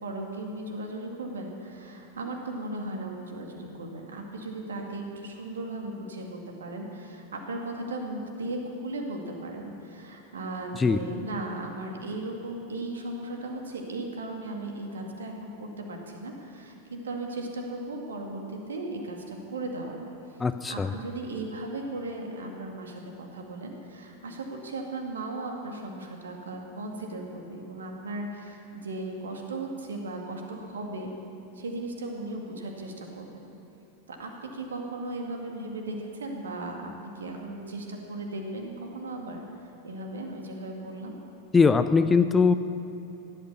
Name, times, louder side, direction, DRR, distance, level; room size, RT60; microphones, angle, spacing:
voice 1, 0.0-20.0 20.7-31.1 31.5-33.5 34.1-39.4 39.8-41.2, right 2 dB, 70° right, 1 dB, 2.4 m, -36 dB
voice 2, 20.4-20.9 41.5-42.5, left 5 dB, 15° left, 11 dB, 0.5 m, -21 dB
16.5 x 12.0 x 7.0 m, 2.9 s
figure-of-eight pair, 90°, 0 cm